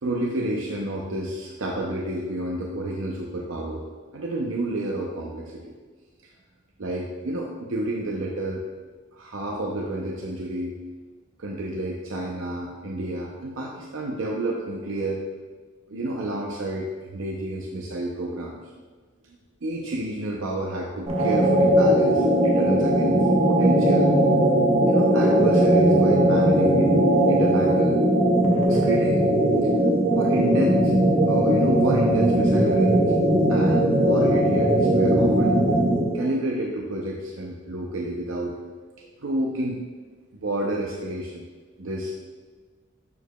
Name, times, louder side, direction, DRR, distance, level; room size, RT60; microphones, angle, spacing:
voice 1, 0.0-3.8 4.1-5.7 6.8-8.6 9.1-10.8 11.4-15.2 15.9-18.6 19.6-24.1 24.9-27.0 27.3-28.0 28.7-29.2 30.2-30.9 31.3-33.0 33.5-35.6 36.1-38.6 39.0-39.8 40.3-41.4 41.8-42.1, right 1 dB, 85° right, -1 dB, 0.6 m, -30 dB
sound 1, 21.1-36.2, right 1 dB, 30° right, 0.8 m, -19 dB
6.9 x 6.5 x 2.3 m, 1.4 s
head